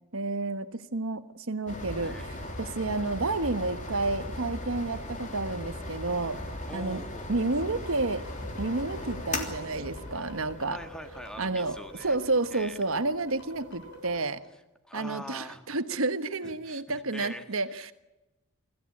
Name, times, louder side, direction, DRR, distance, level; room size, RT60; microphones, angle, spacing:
voice 1, 0.1-6.4 6.7-7.0 7.3-8.2 8.6-10.8 11.4-14.4 14.9-17.9, right 3 dB, 65° right, 11 dB, 1.3 m, -30 dB
sound 1, 1.7-14.1, left 1 dB, 35° left, 3.1 m, -38 dB
voice 2, 6.3-7.3 10.1-12.2 12.5-12.8 14.8-15.6 16.4-17.9, equal, 5° left, 7 dB, 1.6 m, -44 dB
sound 2, 7.5-14.3, equal, 50° left, 6.3 m, -48 dB
25.5 x 14.5 x 8.6 m, 1.0 s
head